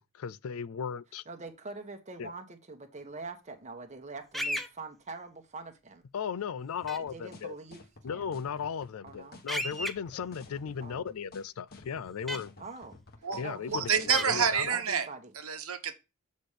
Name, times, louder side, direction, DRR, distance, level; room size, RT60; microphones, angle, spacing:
voice 1, 0.0-1.2 2.2-2.3 6.1-7.6 8.0-12.6 13.4-14.8, left 7 dB, 75° left, 0.4 m, -36 dB
voice 2, 1.3-6.0 6.9-7.8 8.1-8.3 9.0-9.4 10.8-11.0 12.6-13.0 13.4-14.1 14.4-15.3, right 3 dB, 35° right, 1.1 m, -44 dB
sound 1, 4.3-4.7 6.9-7.0 9.5-9.9 12.3-12.4 14.1-14.2, equal, ahead, 0.8 m, -32 dB
sound 2, 6.8-14.7, left 3 dB, 45° left, 1.4 m, -51 dB
voice 3, 13.7-15.1 15.4-15.9, right 7 dB, 75° right, 1.1 m, -28 dB
8.0 x 4.3 x 4.9 m
head